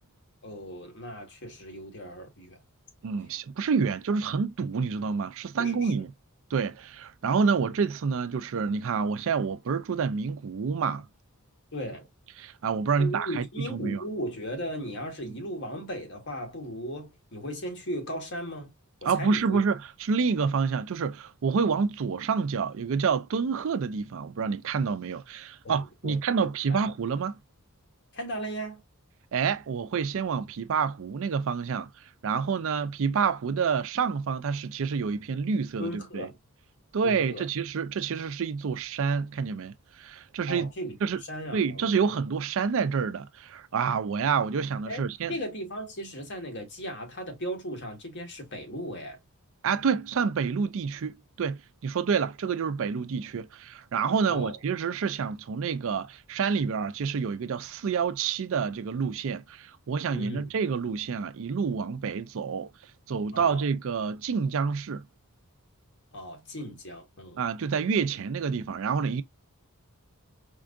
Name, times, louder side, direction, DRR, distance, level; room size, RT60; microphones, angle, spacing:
voice 1, 0.4-2.6 5.6-6.0 11.7-12.1 13.0-18.7 19.0-19.6 25.6-26.9 28.1-28.8 35.8-36.4 37.0-37.5 40.5-41.0 41.3-42.0 44.8-49.2 54.3-54.6 60.1-60.5 63.3-63.6 66.1-67.4, equal, 55° left, 1.4 m, -37 dB
voice 2, 3.0-6.1 6.5-11.0 12.4-14.0 19.0-27.4 29.3-31.9 32.2-36.3 36.9-40.7 41.0-41.2 41.5-45.3 49.6-62.7 63.1-65.1 67.4-69.2, right 5 dB, 60° right, 0.4 m, -28 dB
4.5 x 2.4 x 2.4 m
head